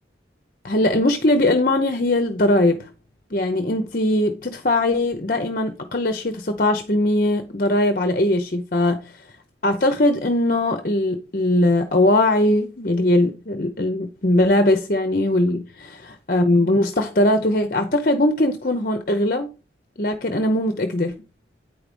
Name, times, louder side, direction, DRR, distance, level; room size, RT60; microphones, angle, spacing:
voice 1, 0.6-2.9 3.3-9.1 9.6-19.5 20.0-21.1, left 1 dB, 50° left, 0.9 m, -20 dB
9.4 x 4.8 x 5.3 m
head